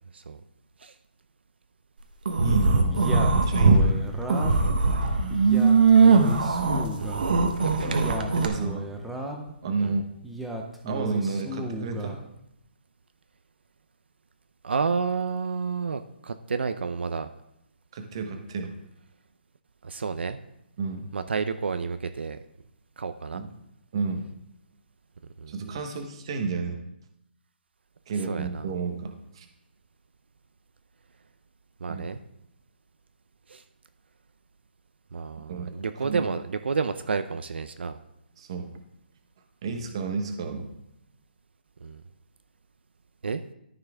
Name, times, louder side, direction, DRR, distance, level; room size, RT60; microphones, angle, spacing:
sound 1, 2.2-3.8 4.2-8.5, right 4 dB, 55° right, 1.2 m, -20 dB
voice 1, 2.4-4.0 7.9-8.9 9.6-10.0 10.9-12.2 17.9-18.7 20.8-21.1 23.3-23.5 23.9-24.3 25.5-26.8 28.1-29.5 31.9-32.0 35.5-36.2 38.4-38.7 39.6-40.7, right 4 dB, 30° right, 5 dB, 1.0 m, -31 dB
Male speech man speaking, 2.9-4.7 5.3-7.3 7.8-9.5 10.2-12.2, right 1 dB, ahead, 0.4 m, -35 dB
voice 2, 7.0-8.1 9.8-10.0 14.6-17.3 19.8-20.4 21.1-22.4 23.0-23.4 25.4-25.8 28.3-28.7 31.8-32.2 33.5-33.6 35.1-38.0 41.8-42.0 43.2-43.4, right 5 dB, 70° right, 10 dB, 0.6 m, -30 dB
13.5 x 5.7 x 3.5 m, 0.81 s
hypercardioid pair, 175°, 6 cm